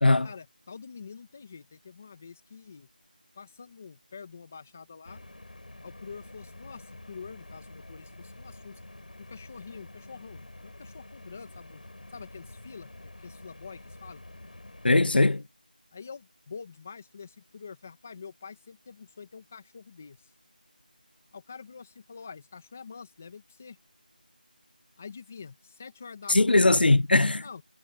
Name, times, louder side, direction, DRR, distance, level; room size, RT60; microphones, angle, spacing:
voice 1, 0.2-2.9 3.3-5.2 5.8-8.8 9.3-11.8 12.1-14.2 15.9-20.3 21.3-23.8 25.0-26.6 27.4-27.6, left 5 dB, 15° left, 1.9 m, -46 dB
sound 1, 5.0-15.2, left 2 dB, 60° left, 6.1 m, -48 dB
voice 2, 14.8-15.4 26.3-27.4, left 2 dB, 85° left, 0.6 m, -20 dB
figure-of-eight pair, 180°, 5 cm